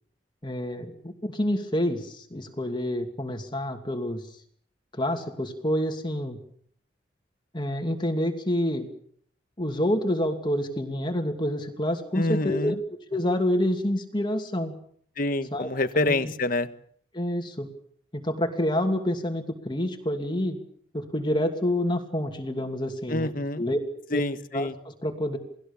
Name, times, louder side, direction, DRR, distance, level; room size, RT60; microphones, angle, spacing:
voice 1, 0.4-4.4 4.9-6.4 7.5-8.9 9.6-12.8 13.1-14.7 15.5-15.7 15.9-16.3 17.1-17.7 18.1-20.6 20.9-23.8 24.1-24.2 24.5-25.4, left 1 dB, 25° left, 5 dB, 2.6 m, -28 dB
voice 2, 12.2-12.8 15.2-16.7 23.1-23.6 24.1-24.7, left 2 dB, 50° left, 11 dB, 1.6 m, -27 dB
29.5 x 20.0 x 7.2 m, 0.62 s
head